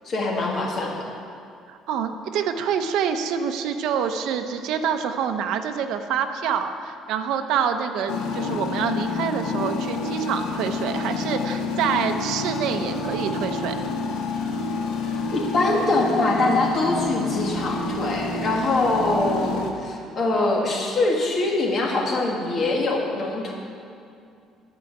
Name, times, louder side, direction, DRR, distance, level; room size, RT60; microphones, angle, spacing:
voice 1, 0.0-1.0 15.3-23.5, left 2 dB, 35° left, -1 dB, 1.6 m, -23 dB
voice 2, 1.7-13.8, right 7 dB, 70° right, 7 dB, 0.7 m, -26 dB
sound 1, 8.1-19.7, left 3 dB, 90° left, 1.1 m, -28 dB
12.0 x 4.9 x 8.4 m, 2.4 s
cardioid pair, 165°, 0 cm